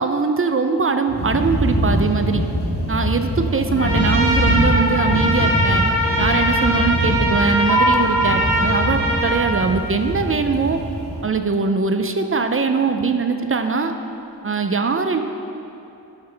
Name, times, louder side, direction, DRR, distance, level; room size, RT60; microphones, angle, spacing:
voice 1, 0.0-2.4 2.9-5.8 6.2-10.8 11.2-13.9 14.4-15.2, right 4 dB, 35° right, 7 dB, 0.4 m, -21 dB
sound 1, 1.1-11.3, equal, 80° left, 2.0 m, -23 dB
Trumpet, 3.8-9.5, equal, 30° left, 2.1 m, -21 dB
sound 2, 7.7-14.7, right 2 dB, 70° right, 1.1 m, -29 dB
12.5 x 5.7 x 3.3 m, 2.8 s
wide cardioid pair, 85°, 39 cm